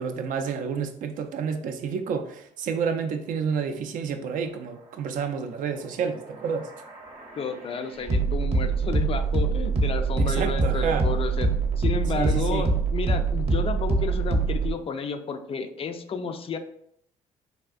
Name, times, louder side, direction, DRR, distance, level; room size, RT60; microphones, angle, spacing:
voice 1, 0.0-6.7 10.2-11.1 12.1-12.7, right 6 dB, 65° right, 7 dB, 0.4 m, -29 dB
sound 1, 6.0-14.7, right 4 dB, 45° right, 0.7 m, -25 dB
voice 2, 7.4-16.6, left 5 dB, 40° left, 8 dB, 0.3 m, -32 dB
3.4 x 2.4 x 2.4 m, 0.72 s
supercardioid pair, 75°, 15 cm